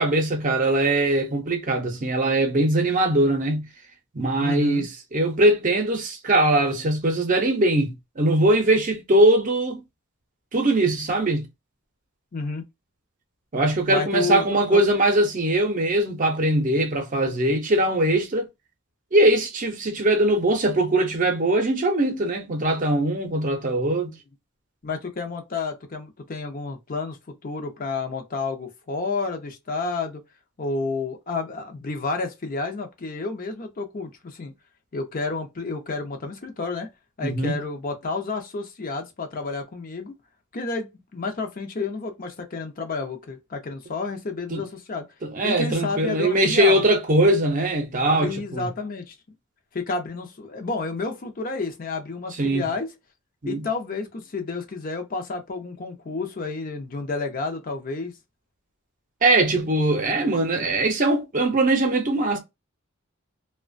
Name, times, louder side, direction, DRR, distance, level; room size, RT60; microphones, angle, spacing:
voice 1, 0.0-3.7 4.1-9.8 10.5-11.5 13.5-18.5 19.1-24.1 37.2-37.5 44.5-44.6 45.2-48.7 52.4-52.7 53.4-53.6 59.2-62.4, right 1 dB, 40° right, 0.6 m, -21 dB
voice 2, 4.4-4.9 12.3-12.6 13.9-14.8 24.1-24.2 24.8-27.2 27.4-30.2 30.6-34.5 34.9-36.9 37.2-40.1 40.5-45.0 45.4-46.8 48.2-49.2 49.7-52.9 53.5-58.1, left 3 dB, 40° left, 0.6 m, -30 dB
2.9 x 2.2 x 2.4 m
head